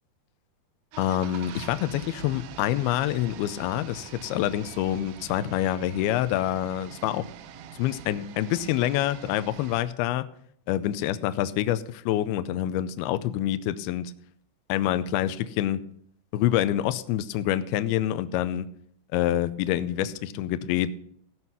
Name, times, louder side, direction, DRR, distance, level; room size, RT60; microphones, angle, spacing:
sound 1, 0.9-9.8, right 9 dB, 80° right, 2.8 m, -44 dB
voice 1, 1.0-7.3 7.8-10.3 10.7-14.1 14.7-15.8 16.3-18.7 19.1-20.9, left 12 dB, 80° left, 13 dB, 2.4 m, -26 dB
16.5 x 6.1 x 5.5 m, 0.67 s
omnidirectional pair, 4.8 m